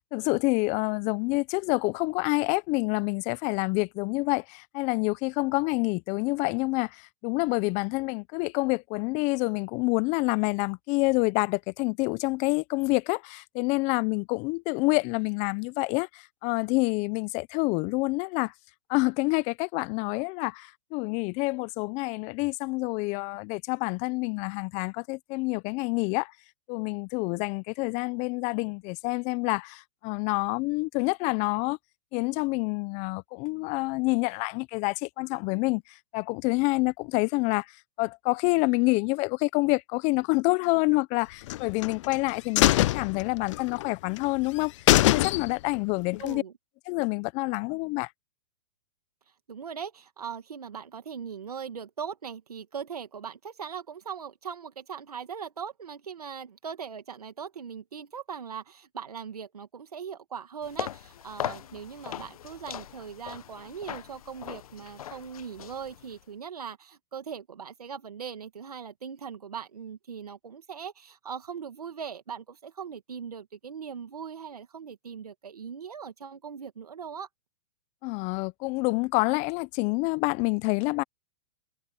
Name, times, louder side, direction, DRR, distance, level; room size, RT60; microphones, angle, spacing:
voice 1, 0.1-18.5 18.9-26.3 26.7-31.8 32.1-37.7 38.0-44.7 45.1-46.4 46.9-48.1 78.0-81.0, left 26 dB, 40° left, 1.0 m, -27 dB
sound 1, 41.5-42.2 42.6-43.8 44.2-44.3 44.6-44.7 44.9-45.8 46.1-46.2, left 16 dB, 55° left, 0.5 m, -22 dB
voice 2, 46.2-46.5 49.5-77.3, right 7 dB, 85° right, 2.5 m, -40 dB
sound 2, 60.6-66.2, left 11 dB, 70° left, 1.2 m, -39 dB
hypercardioid pair, 120°, 19 cm